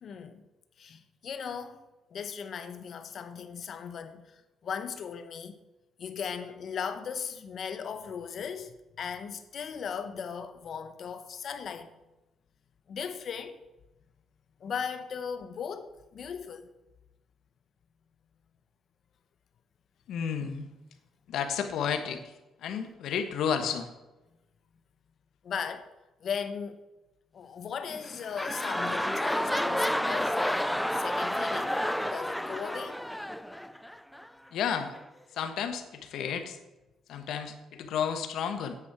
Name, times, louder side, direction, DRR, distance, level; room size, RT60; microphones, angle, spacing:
voice 1, 0.0-0.4 0.8-1.8 2.1-5.5 6.0-11.9 12.9-13.5 14.6-16.7 25.4-25.9 26.2-26.8 27.3-31.8 32.0-33.0, left 7 dB, 50° left, 0.8 m, -37 dB
voice 2, 20.1-20.7 21.3-22.2 22.6-23.9 34.5-34.9 35.3-36.6 37.1-38.8, left 7 dB, 70° left, 1.2 m, -32 dB
sound 1, 27.9-34.3 34.9-35.0, equal, 5° left, 0.3 m, -30 dB
9.5 x 8.6 x 4.8 m
cardioid pair, 145°, 0 cm